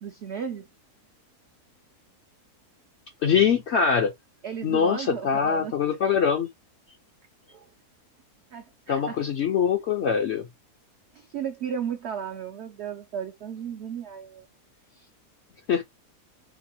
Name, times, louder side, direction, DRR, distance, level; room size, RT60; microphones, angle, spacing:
voice 1, 0.0-0.7 4.4-5.8 7.5-7.7 8.5-9.2 11.1-14.5 14.9-15.1, right 8 dB, 85° right, 0.5 m, -35 dB
voice 2, 3.2-4.1 4.6-6.5 8.9-10.5 15.7-15.8, left 7 dB, 70° left, 0.6 m, -23 dB
3.3 x 3.0 x 2.9 m
omnidirectional pair, 1.7 m